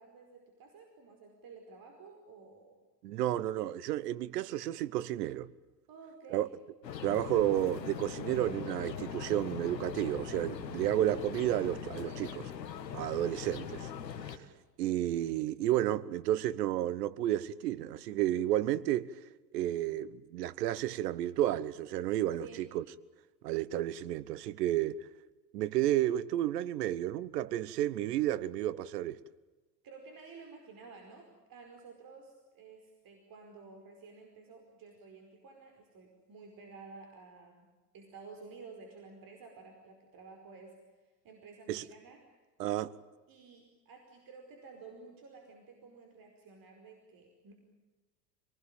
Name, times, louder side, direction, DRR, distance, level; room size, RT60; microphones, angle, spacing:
voice 1, 0.0-2.9 5.9-6.5 11.9-12.2 13.0-13.3 22.4-22.7 29.8-37.7 37.9-40.8 41.2-42.2 43.3-47.5, right 4 dB, 45° right, 5.1 m, -52 dB
voice 2, 3.0-5.5 6.3-6.5 7.0-12.4 12.9-13.9 14.3-14.5 14.8-19.1 19.5-22.8 23.4-25.0 25.5-29.2 41.7-41.8 42.6-42.9, right 13 dB, 70° right, 1.3 m, -31 dB
sound 1, 6.8-14.4, left 8 dB, 85° left, 1.8 m, -41 dB
26.0 x 19.5 x 9.0 m
hypercardioid pair, 75°, 49 cm